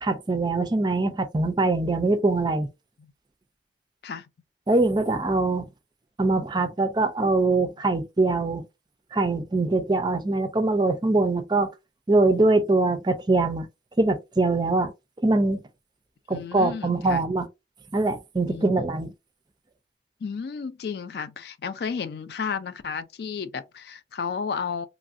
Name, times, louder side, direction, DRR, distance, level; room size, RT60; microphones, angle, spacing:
voice 1, 0.0-2.7 4.7-5.7 6.2-8.6 9.1-11.7 12.1-13.7 14.0-14.9 15.2-15.6 16.3-17.5 17.9-19.1, right 2 dB, 25° right, 0.4 m, -23 dB
voice 2, 16.3-17.2 18.5-18.9 20.2-24.9, left 6 dB, 60° left, 0.3 m, -32 dB
3.0 x 2.6 x 2.5 m
head